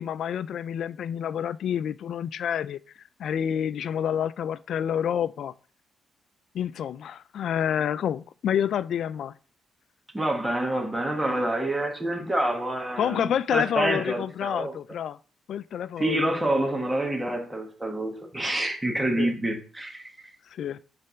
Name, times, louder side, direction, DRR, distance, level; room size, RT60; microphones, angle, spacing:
voice 1, 0.0-2.8 3.2-5.5 6.5-9.3 13.0-15.2 15.5-16.8 19.2-19.3 20.5-20.8, left 9 dB, 70° left, 0.3 m, -28 dB
voice 2, 10.1-14.7 16.0-20.0, right 1 dB, 15° right, 1.4 m, -27 dB
6.7 x 3.4 x 5.6 m
cardioid pair, 95°, 0 cm